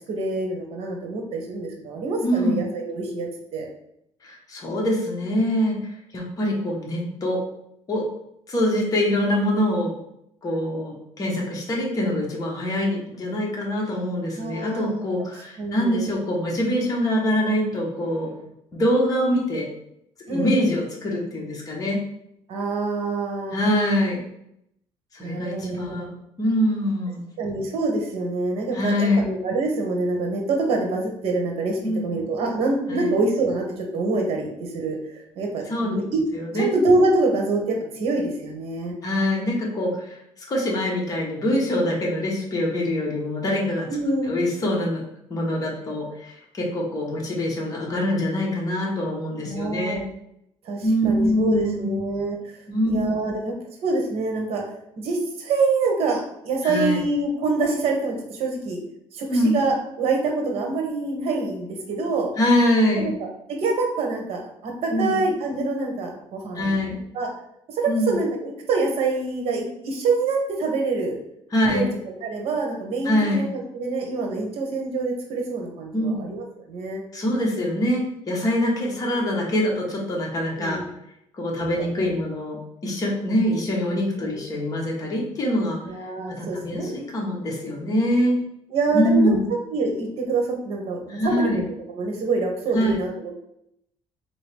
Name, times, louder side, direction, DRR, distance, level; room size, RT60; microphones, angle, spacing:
voice 1, 0.1-3.6 14.4-15.0 15.6-16.1 20.3-20.7 22.5-23.6 25.2-26.1 27.4-36.2 36.5-38.9 43.9-44.3 49.4-50.0 50.6-52.6 52.9-53.5 53.8-54.6 55.0-58.8 59.1-62.3 62.9-66.8 67.1-67.3 67.7-71.1 71.7-71.9 72.2-77.0 80.6-80.9 81.8-82.1 84.2-84.4 85.8-86.9 88.7-89.3 89.7-93.4, right 3 dB, 65° right, 1 dB, 1.1 m, -26 dB
voice 2, 2.2-2.6 4.2-7.4 7.9-8.1 8.5-9.9 10.4-18.3 18.7-19.7 20.3-22.0 23.5-24.2 25.1-26.1 26.4-27.2 28.7-29.3 31.8-32.1 32.9-33.1 35.7-35.9 36.3-36.7 39.0-40.1 40.5-43.9 44.3-45.0 45.3-50.0 50.8-51.9 52.7-53.3 56.6-57.0 59.3-59.6 62.4-63.1 64.9-65.2 66.5-67.0 67.9-68.1 71.5-71.9 73.0-73.4 75.9-76.2 77.1-80.8 81.3-82.6 82.8-85.8 86.4-88.4 88.9-89.4 91.1-91.6 92.7-93.0, left 1 dB, 35° left, -2 dB, 1.1 m, -24 dB
3.9 x 2.9 x 3.4 m, 0.76 s
cardioid pair, 130°, 11 cm